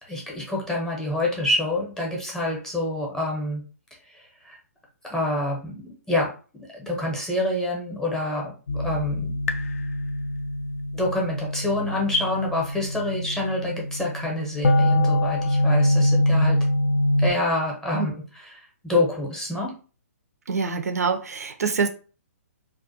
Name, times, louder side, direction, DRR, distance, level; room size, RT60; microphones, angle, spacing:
voice 1, 0.1-3.6 4.4-4.6 5.0-9.3 10.9-16.6 17.2-18.2 18.5-19.7, left 1 dB, 5° left, -2 dB, 0.7 m, -27 dB
sound 1, 8.7-17.3, left 1 dB, 65° left, 0.3 m, -24 dB
voice 2, 20.5-21.9, right 5 dB, 75° right, 7 dB, 0.4 m, -25 dB
2.4 x 2.1 x 2.6 m, 0.36 s
figure-of-eight pair, 130°, 8 cm